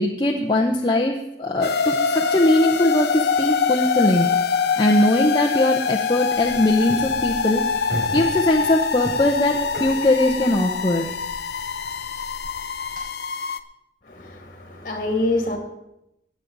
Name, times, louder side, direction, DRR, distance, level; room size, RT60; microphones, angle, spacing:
voice 1, 0.0-4.3 4.8-7.6 8.1-11.1, left 1 dB, 25° left, 0 dB, 0.8 m, -20 dB
sound 1, 1.6-13.6, left 6 dB, 60° left, 0.6 m, -24 dB
sound 2, 6.3-13.0, right 1 dB, 55° right, 4.6 m, -37 dB
voice 2, 14.1-15.6, left 2 dB, 45° left, 3 dB, 2.3 m, -26 dB
16.5 x 9.2 x 4.0 m, 0.85 s
head